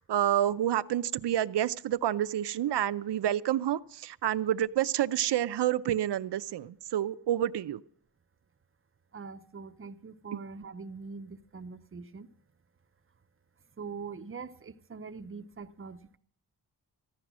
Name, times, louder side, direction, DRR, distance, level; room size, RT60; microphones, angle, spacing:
voice 1, 0.1-7.8, right 11 dB, 75° right, 0.6 m, -28 dB
voice 2, 9.1-12.3 13.8-16.2, right 5 dB, 30° right, 0.6 m, -43 dB
15.0 x 11.5 x 6.1 m
wide cardioid pair, 145°, 42 cm